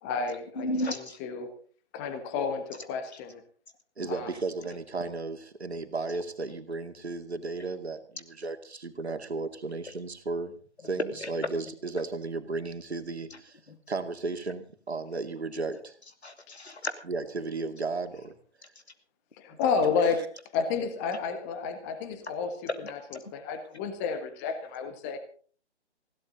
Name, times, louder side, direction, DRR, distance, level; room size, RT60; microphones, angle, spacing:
voice 1, 0.0-1.5 1.9-3.4 4.1-4.4 19.4-22.6 22.8-23.0 23.3-25.2, left 5 dB, 15° left, 9 dB, 1.3 m, -31 dB
voice 2, 0.6-1.2 11.2-11.5 13.7-13.8 16.2-16.9 22.7-23.2, left 1 dB, 70° left, 8 dB, 2.6 m, -33 dB
voice 3, 4.0-10.5 10.8-13.6 13.9-15.9 17.1-18.3, right 3 dB, 65° right, 7 dB, 2.5 m, -34 dB
20.0 x 16.5 x 4.0 m, 0.43 s
figure-of-eight pair, 145°, 34 cm